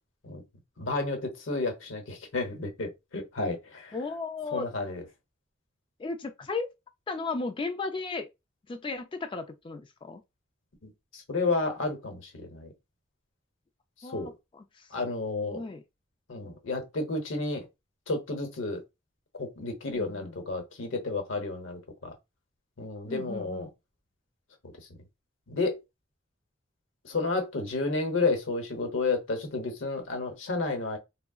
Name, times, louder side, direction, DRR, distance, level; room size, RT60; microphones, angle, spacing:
voice 1, 0.8-4.1 4.5-5.1 10.8-12.7 14.1-14.3 14.9-15.6 16.3-17.7 18.1-18.8 19.4-22.1 22.8-23.7 25.5-25.8 27.0-31.0, left 3 dB, 90° left, 0.8 m, -31 dB
voice 2, 3.9-4.7 6.0-6.7 7.1-8.3 8.7-10.2 14.0-14.9 15.4-15.8 19.9-20.4 23.1-23.7, left 3 dB, 25° left, 0.3 m, -35 dB
3.6 x 2.0 x 2.3 m
head